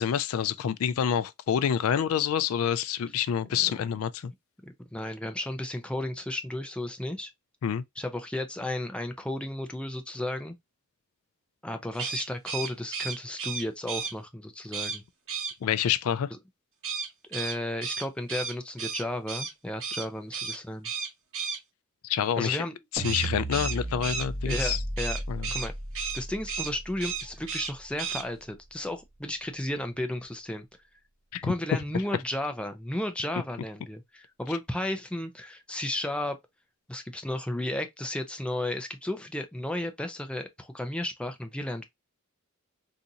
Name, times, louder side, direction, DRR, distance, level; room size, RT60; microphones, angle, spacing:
voice 1, 0.0-4.3 7.6-7.8 15.6-16.3 22.0-22.6 22.9-24.8 25.3-25.5 31.3-31.5, left 8 dB, 70° left, 0.3 m, -27 dB
voice 2, 4.6-7.3 8.0-10.6 11.6-15.0 17.2-20.9 22.4-22.8 24.4-25.2 25.5-25.7 26.1-30.7 31.4-36.4 36.9-41.8, left 1 dB, 5° left, 0.5 m, -33 dB
sound 1, 11.9-14.1 14.7-15.0 15.3-15.5 16.8-19.5 19.8-20.1 20.3-20.6 20.8-21.6 23.0-25.7 25.9-26.2 26.5-26.7 27.0-27.7 28.0-28.2, right 5 dB, 60° right, 2.3 m, -33 dB
sound 2, 23.0-29.3, right 1 dB, 25° right, 0.9 m, -36 dB
3.9 x 2.5 x 2.7 m
head